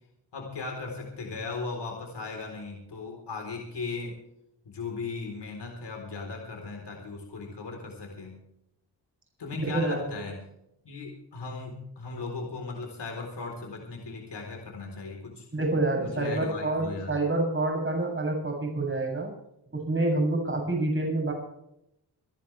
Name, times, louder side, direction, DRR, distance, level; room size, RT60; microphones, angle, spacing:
voice 1, 0.3-4.1 4.7-8.4 9.4-10.4 10.8-15.5 16.0-17.1, left 4 dB, 70° left, 2 dB, 4.0 m, -37 dB
voice 2, 9.6-10.0 15.5-19.3 19.7-21.3, right 2 dB, 30° right, 0 dB, 7.7 m, -27 dB
27.5 x 11.0 x 3.4 m, 0.80 s
cardioid pair, 85°, 42 cm